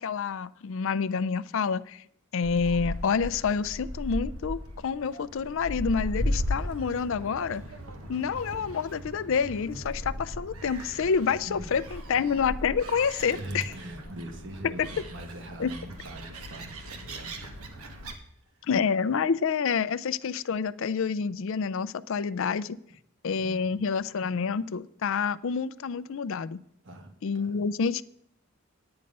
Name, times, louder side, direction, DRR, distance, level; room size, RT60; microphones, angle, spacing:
voice 1, 0.0-2.0 2.3-7.6 8.1-13.6 14.8-14.9 15.6-15.7 18.7-22.8 23.2-26.6 27.2-28.0, left 6 dB, 60° left, 15 dB, 0.4 m, -28 dB
Gull seagull, 2.4-18.1, equal, 75° right, 1.3 m, -37 dB
voice 2, 13.2-17.3 18.6-18.7 23.4-23.8 26.8-27.6, right 1 dB, 55° right, 5 dB, 1.4 m, -42 dB
9.6 x 8.9 x 5.3 m, 0.72 s
head